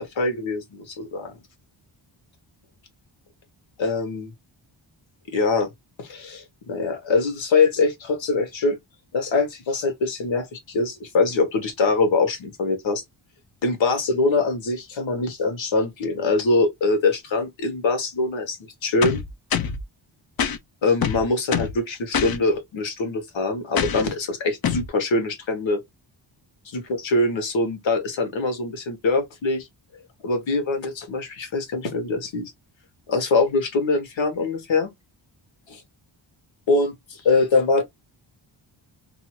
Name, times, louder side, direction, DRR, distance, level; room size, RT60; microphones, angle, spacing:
voice 1, 0.2-1.3 3.8-4.3 5.3-5.7 6.0-8.8 9.1-13.0 13.6-19.2 20.8-25.8 26.6-29.7 30.2-32.5 33.1-34.9 36.7-37.8, left 3 dB, 75° left, 1.2 m, -23 dB
sound 1, 19.0-19.8 20.4-20.6 21.0-21.8 22.1-22.4 23.8-24.1 24.6-24.9, left 7 dB, 50° left, 0.5 m, -25 dB
2.6 x 2.4 x 2.9 m
wide cardioid pair, 170°, 47 cm